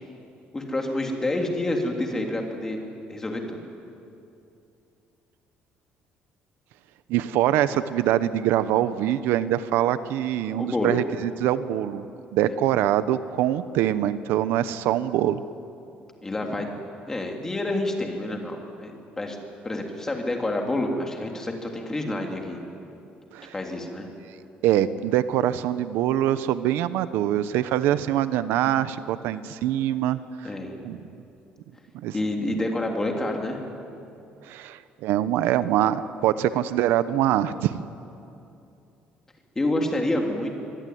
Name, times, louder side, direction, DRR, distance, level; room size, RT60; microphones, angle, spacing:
voice 1, 0.5-2.8 3.1-3.6 10.6-11.0 12.4-12.5 16.2-16.7 17.1-19.4 19.6-22.6 23.5-24.1 30.4-30.8 32.1-33.6 39.5-40.6, left 1 dB, 15° left, 2 dB, 3.2 m, -28 dB
voice 2, 7.1-12.0 12.3-15.4 23.3-23.5 24.6-30.2 30.8-31.0 32.0-32.1 34.4-37.9, right 12 dB, 85° right, 13 dB, 1.0 m, -24 dB
24.5 x 23.0 x 9.5 m, 2.7 s
cardioid pair, 160°, 4 cm